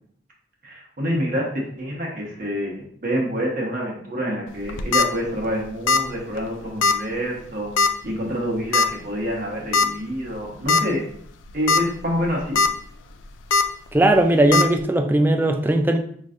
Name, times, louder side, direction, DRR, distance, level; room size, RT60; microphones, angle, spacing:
voice 1, 0.6-11.0 11.5-12.6, equal, 45° right, -2 dB, 1.2 m, -27 dB
sound 1, 4.6-5.1 5.9-6.1 6.4-6.5 6.8-7.0 7.8-8.1 8.7-8.9 9.7-9.9 10.3-10.4 10.7-10.8 11.5-11.8 12.2-12.7 13.5-13.6 14.5-14.6, left 4 dB, 85° left, 0.4 m, -18 dB
voice 2, 13.9-16.0, right 1 dB, 10° right, 4 dB, 0.3 m, -18 dB
5.3 x 3.1 x 2.5 m, 0.63 s
head